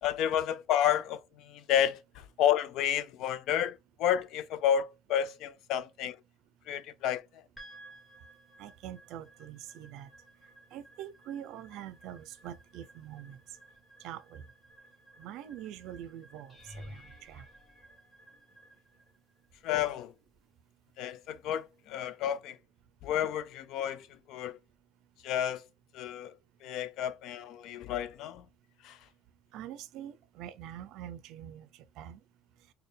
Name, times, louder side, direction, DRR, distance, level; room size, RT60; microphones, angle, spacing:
voice 1, 0.0-6.2 6.7-7.4 19.6-20.1 21.0-22.6 23.0-24.6 25.2-25.6 25.9-26.3 26.6-28.4 28.8-29.0, left 10 dB, 65° left, 0.4 m, -31 dB
sound 1, 7.6-21.9, right 2 dB, 10° left, 1.4 m, -58 dB
voice 2, 8.6-10.1 10.7-13.4 14.0-14.4 15.2-17.4 29.5-31.7 32.0-32.2, right 11 dB, 70° right, 0.4 m, -44 dB
sound 2, 16.5-18.8 19.5-19.9 20.3-20.4 24.8-24.9, left 1 dB, 35° left, 1.4 m, -51 dB
4.2 x 2.2 x 3.3 m
cardioid pair, 125°, 0 cm